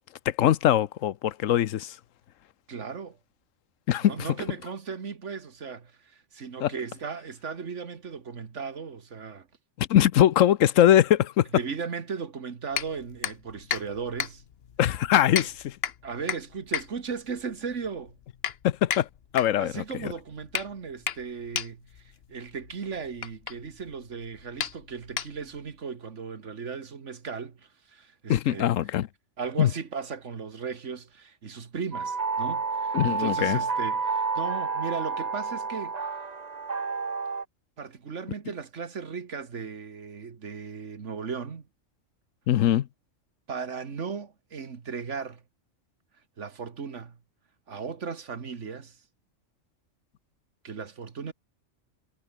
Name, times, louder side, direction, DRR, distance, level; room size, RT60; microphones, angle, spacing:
voice 1, 0.3-2.0 3.9-4.3 6.6-6.7 9.8-11.5 14.8-15.7 18.6-19.1 19.3-20.1 28.3-29.1 29.6-29.7 32.9-33.6 42.5-42.9, left 11 dB, 85° left, 1.1 m, -22 dB
voice 2, 2.7-3.2 4.1-9.5 11.5-14.4 15.3-15.5 16.0-18.1 19.6-22.0 22.3-27.6 27.9-28.7 29.4-36.0 37.8-41.7 43.5-45.4 46.4-47.2 47.7-49.0 50.6-51.3, right 5 dB, 70° right, 2.0 m, -36 dB
sound 1, 12.7-25.7, left 8 dB, 55° left, 1.0 m, -35 dB
sound 2, 31.9-37.4, right 4 dB, 35° right, 1.2 m, -30 dB
omnidirectional pair, 1.3 m